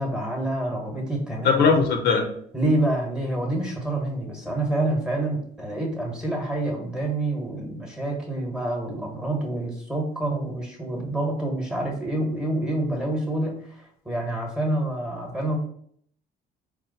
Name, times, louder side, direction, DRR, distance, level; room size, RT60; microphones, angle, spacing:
voice 1, 0.0-1.8 2.5-15.6, right 1 dB, 5° right, 0 dB, 1.2 m, -27 dB
voice 2, 1.4-2.3, left 5 dB, 75° left, 4 dB, 0.7 m, -19 dB
4.3 x 2.1 x 3.8 m, 0.64 s
cardioid pair, 110°, 17 cm